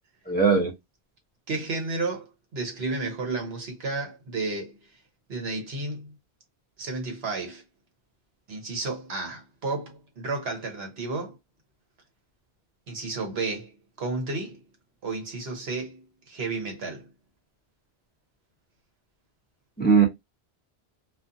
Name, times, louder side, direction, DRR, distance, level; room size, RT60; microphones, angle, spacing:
voice 1, 0.3-0.7 19.8-20.1, right 5 dB, 10° left, 0.7 m, -19 dB
voice 2, 1.5-4.8 5.3-6.1 6.8-7.6 8.5-11.4 12.9-14.6 15.0-17.1, right 3 dB, 75° right, 1.1 m, -32 dB
2.5 x 2.4 x 2.5 m
omnidirectional pair, 1.1 m